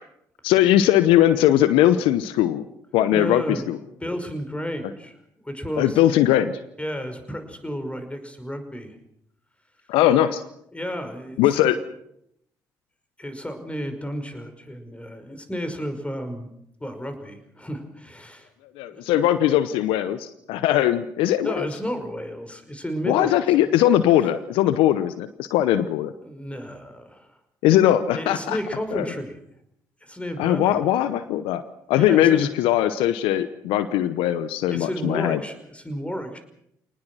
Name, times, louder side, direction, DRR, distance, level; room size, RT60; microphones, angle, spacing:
voice 1, 0.4-2.7 2.9-3.8 5.8-6.6 9.9-10.4 11.4-11.8 18.8-21.7 23.1-26.1 27.6-28.6 28.9-29.1 30.4-31.6 31.9-35.4, left 12 dB, 75° left, 13 dB, 0.8 m, -20 dB
voice 2, 3.1-3.6 4.0-5.2 5.4-6.0 6.8-9.0 10.7-11.7 13.2-16.5 16.8-18.5 18.9-19.1 21.4-23.3 23.6-23.7 24.2-24.3 26.2-27.4 28.2-29.4 30.0-30.8 32.0-32.5 34.7-36.4, equal, 15° left, 8 dB, 5.5 m, -32 dB
27.0 x 19.5 x 6.3 m, 0.75 s
hypercardioid pair, 45°, 9 cm